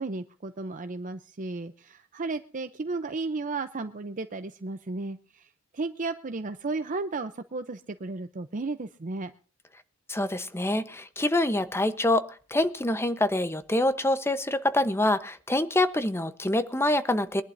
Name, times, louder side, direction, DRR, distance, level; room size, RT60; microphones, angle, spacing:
voice 1, 0.0-9.3, right 3 dB, 40° right, 9 dB, 0.6 m, -34 dB
voice 2, 10.1-17.4, left 1 dB, 10° left, 11 dB, 0.9 m, -26 dB
23.0 x 11.5 x 2.6 m, 0.39 s
head